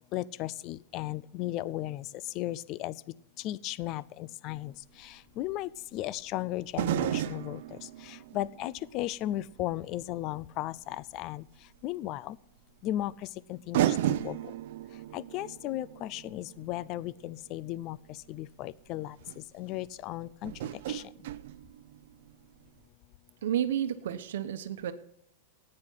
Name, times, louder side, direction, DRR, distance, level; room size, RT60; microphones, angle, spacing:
voice 1, 0.1-2.1 2.3-2.9 3.4-4.7 5.0-7.6 8.0-11.4 11.8-12.4 12.8-13.1 13.5-14.4 15.1-18.0 18.3-19.2 19.5-20.5 20.9-21.0, left 15 dB, 30° left, 21 dB, 0.4 m, -35 dB
sound 1, 4.6-4.7 6.7-9.7 10.1-10.2 11.8-11.9 13.1-13.2 13.7-17.8 18.8-18.9 19.2-19.4 20.4-22.4 22.6-22.7, right 12 dB, 55° right, 0.7 m, -34 dB
voice 2, 23.4-24.9, right 10 dB, 75° right, 8 dB, 1.1 m, -31 dB
15.5 x 9.7 x 5.7 m, 0.72 s
supercardioid pair, 170°, 0 cm